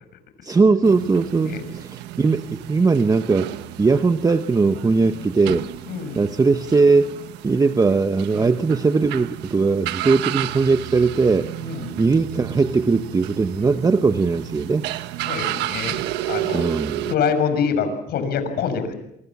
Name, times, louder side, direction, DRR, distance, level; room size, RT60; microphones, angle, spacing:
voice 1, 0.4-3.5 3.8-5.6 6.1-7.1 7.4-11.5 12.0-14.9 16.5-17.1, right 4 dB, 20° right, 10 dB, 1.0 m, -19 dB
sound 1, 0.8-17.2, right 14 dB, 90° right, 1.3 m, -32 dB
voice 2, 5.9-6.3 8.4-8.5 11.6-11.9 15.2-16.0 16.3-18.9, left 6 dB, 70° left, 9 dB, 6.4 m, -25 dB
27.5 x 25.5 x 7.3 m, 0.79 s
cardioid pair, 110°, 17 cm